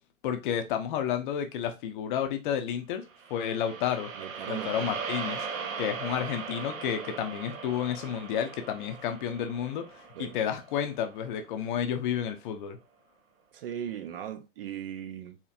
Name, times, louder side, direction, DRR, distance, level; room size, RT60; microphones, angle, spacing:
voice 1, 0.2-4.1 4.5-5.5 5.8-12.8, left 9 dB, 35° left, 0.6 m, -31 dB
sound 1, 3.1-11.4, right 5 dB, 70° right, 0.9 m, -39 dB
voice 2, 4.2-4.9 10.2-10.4 13.5-15.4, right 10 dB, 45° right, 0.4 m, -38 dB
4.3 x 2.8 x 2.4 m
hypercardioid pair, 115°, 42 cm